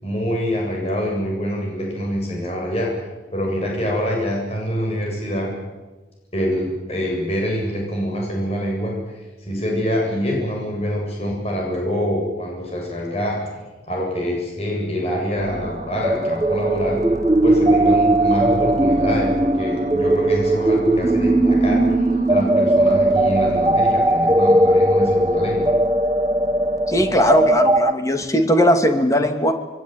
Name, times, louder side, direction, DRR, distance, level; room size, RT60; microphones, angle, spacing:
voice 1, 0.0-2.9 3.3-5.5 6.3-13.4 13.9-17.0 17.4-21.8 22.3-25.7, equal, 35° left, -1 dB, 7.8 m, -25 dB
sound 1, 15.3-27.7, right 1 dB, 35° right, 2.5 m, -34 dB
sound 2, 16.0-27.9, right 1 dB, 20° right, 1.1 m, -18 dB
voice 2, 26.9-29.5, equal, 15° left, 6 dB, 2.4 m, -18 dB
25.5 x 22.0 x 9.4 m, 1.2 s
head